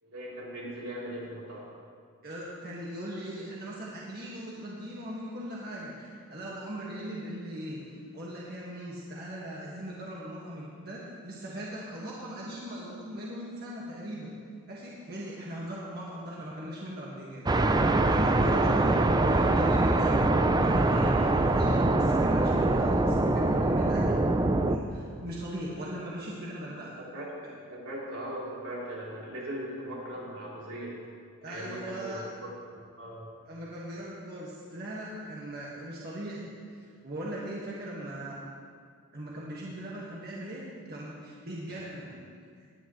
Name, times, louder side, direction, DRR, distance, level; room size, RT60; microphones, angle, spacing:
voice 1, 0.0-1.7 26.7-30.9 31.5-32.5 33.0-33.3 41.8-41.9, right 1 dB, 85° right, -6 dB, 3.6 m, -39 dB
voice 2, 2.2-14.3 14.7-17.4 18.0-24.2 24.6-27.0 31.4-32.3 33.5-36.5 37.0-38.4 39.1-42.2 42.6-42.7, equal, 45° right, -6 dB, 1.7 m, -39 dB
sound 1, 17.5-24.8, right 2 dB, 20° right, 0.4 m, -24 dB
18.5 x 10.5 x 3.2 m, 2.1 s
head